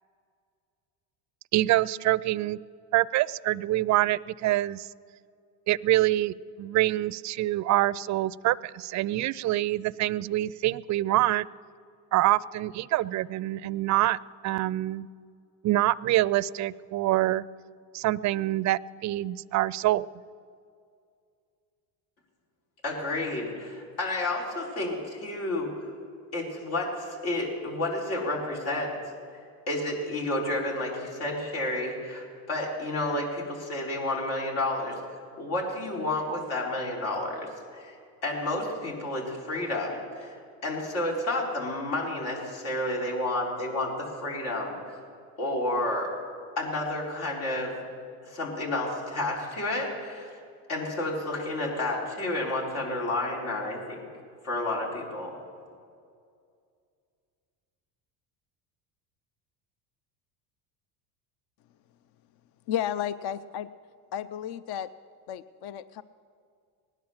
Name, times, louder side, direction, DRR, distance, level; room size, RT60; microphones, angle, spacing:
voice 1, 1.5-2.6 2.9-4.9 5.7-11.5 12.1-15.1 15.6-17.4 17.9-20.1, right 15 dB, 40° right, 20 dB, 0.4 m, -25 dB
voice 2, 22.8-25.9 26.3-29.0 29.7-35.0 35.4-45.0 45.4-46.1 46.6-47.8 48.2-50.3 50.7-54.0 54.4-55.3, left 2 dB, 70° left, -2 dB, 4.9 m, -31 dB
voice 3, 62.7-63.7 64.1-64.9 65.3-66.0, left 10 dB, 50° left, 14 dB, 0.6 m, -32 dB
19.5 x 10.0 x 7.3 m, 2.3 s
supercardioid pair, 85°, 49 cm